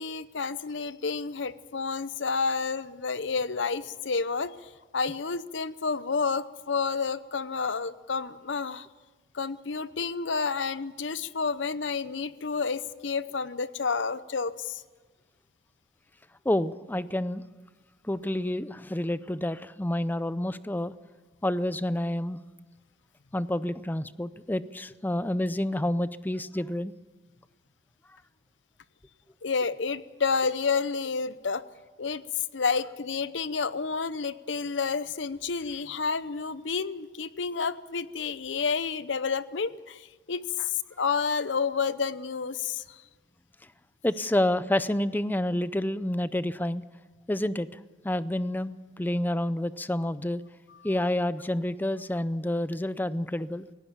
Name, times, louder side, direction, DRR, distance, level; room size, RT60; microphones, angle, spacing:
voice 1, 0.0-8.9 9.3-14.8 29.4-31.6 32.0-43.0, left 5 dB, 75° left, 16 dB, 0.8 m, -30 dB
voice 2, 16.4-17.5 18.0-20.9 21.4-22.4 23.3-26.9 44.0-46.8 47.3-47.7 48.0-50.4 50.8-53.7, left 1 dB, 10° left, 15 dB, 0.5 m, -29 dB
18.0 x 17.0 x 8.6 m, 1.3 s
head